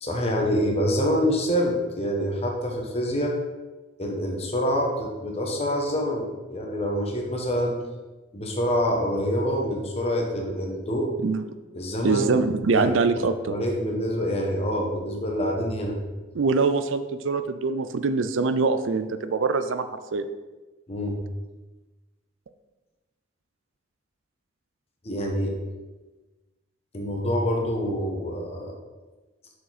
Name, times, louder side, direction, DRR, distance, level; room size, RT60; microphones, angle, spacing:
voice 1, 0.0-3.3 4.0-7.8 8.3-11.1 11.7-12.9 13.5-16.0 20.9-21.2 25.0-25.5 26.9-28.8, equal, 30° left, 0 dB, 1.1 m, -26 dB
voice 2, 12.0-13.5 16.3-20.3, right 4 dB, 85° right, 10 dB, 0.5 m, -24 dB
6.7 x 6.6 x 4.1 m, 1.2 s
head